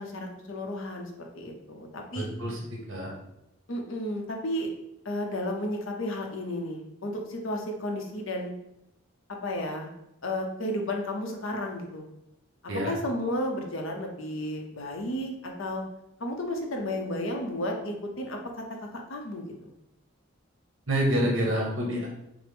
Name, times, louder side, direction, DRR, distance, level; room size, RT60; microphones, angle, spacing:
voice 1, 0.0-2.3 3.7-4.7 5.0-8.5 9.4-9.9 10.2-12.0 12.6-15.8 16.2-18.6 18.9-19.7, left 1 dB, 75° left, 2 dB, 0.8 m, -33 dB
voice 2, 2.1-3.1 12.7-12.9 20.9-22.1, equal, 70° right, -2 dB, 1.2 m, -27 dB
5.9 x 2.1 x 3.5 m, 0.86 s
head